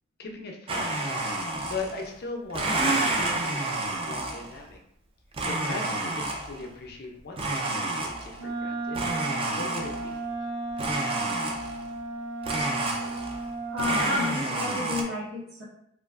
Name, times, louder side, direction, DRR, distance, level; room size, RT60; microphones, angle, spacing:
voice 1, 0.2-1.1 1.7-4.8 5.5-9.1 9.6-10.2, left 3 dB, 50° left, 2 dB, 0.5 m, -39 dB
Domestic sounds home sounds, 0.7-2.1 2.5-4.6 5.3-6.6 7.4-8.5 8.9-10.2 10.8-11.9 12.4-13.5 13.8-15.0, right 2 dB, 30° right, 0.4 m, -29 dB
Wind instrument woodwind instrument, 8.3-14.4, right 2 dB, 90° right, 1.1 m, -35 dB
voice 2, 13.7-15.6, left 2 dB, 55° right, -8 dB, 0.8 m, -31 dB
3.1 x 2.4 x 2.3 m, 0.74 s
head